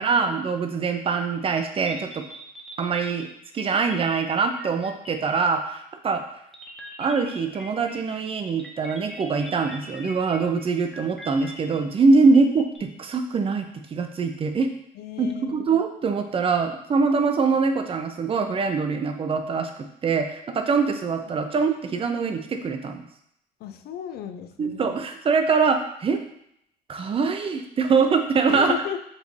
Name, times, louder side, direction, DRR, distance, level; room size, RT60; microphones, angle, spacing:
voice 1, 0.0-2.3 2.8-3.3 3.5-6.2 7.0-14.7 15.2-23.0 24.6-26.2 26.9-28.7, right 4 dB, 35° right, 6 dB, 0.5 m, -23 dB
sound 1, 1.9-5.8 6.5-12.8, equal, ahead, 0.9 m, -43 dB
voice 2, 15.0-15.6 23.6-24.9 28.4-29.0, left 10 dB, 70° left, 9 dB, 0.5 m, -34 dB
5.1 x 2.7 x 3.2 m, 0.74 s
cardioid pair, 110°, 17 cm